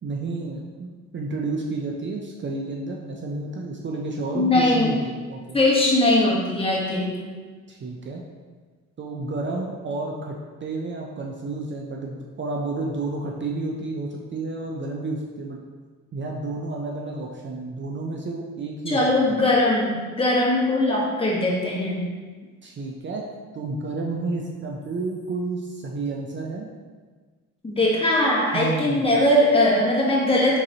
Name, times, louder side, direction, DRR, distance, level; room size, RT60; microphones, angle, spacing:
voice 1, 0.0-5.6 7.7-8.3 9.0-10.3 10.6-15.6 16.1-19.0 19.3-19.4 22.6-23.2 23.5-26.7 28.5-29.2, right 3 dB, 40° right, 0 dB, 0.5 m, -31 dB
voice 2, 4.3-4.9 5.5-7.1 18.9-22.0 27.6-30.6, left 1 dB, 20° left, -5 dB, 1.2 m, -20 dB
4.7 x 3.7 x 2.8 m, 1.4 s
cardioid pair, 90°, 30 cm